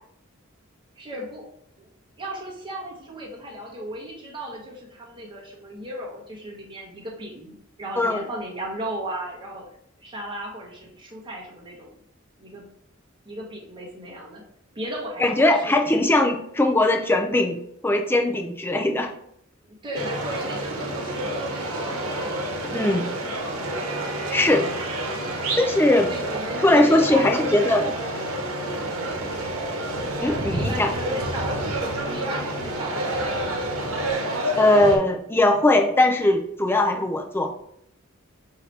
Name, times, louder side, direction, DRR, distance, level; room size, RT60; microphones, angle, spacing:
voice 1, 1.0-1.5 1.8-1.9 2.2-12.0 12.4-12.7 13.2-14.4 14.7-15.9 19.7-22.5 26.0-27.9 30.4-33.8, right 1 dB, 25° right, -3 dB, 1.0 m, -36 dB
voice 2, 15.2-17.6 17.8-19.1 22.7-23.1 24.3-24.7 25.6-26.1 26.6-27.8 30.2-30.9 34.6-37.5, left 1 dB, 10° left, 4 dB, 0.4 m, -20 dB
sound 1, 19.9-35.0, right 1 dB, 90° right, 1.0 m, -29 dB
5.6 x 2.8 x 3.2 m, 0.69 s
head